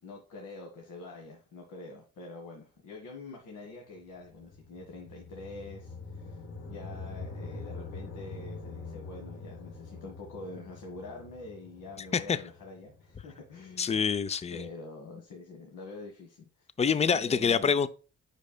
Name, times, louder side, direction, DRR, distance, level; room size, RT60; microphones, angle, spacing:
voice 1, 0.0-6.4 6.7-14.1 14.5-16.7 17.0-17.8, left 3 dB, 80° left, 1.6 m, -45 dB
sound 1, 3.9-14.2, left 3 dB, 50° left, 1.6 m, -45 dB
voice 2, 13.8-14.6 16.8-17.9, left 6 dB, 20° left, 0.5 m, -26 dB
8.2 x 5.6 x 2.3 m
cardioid pair, 90°, 30 cm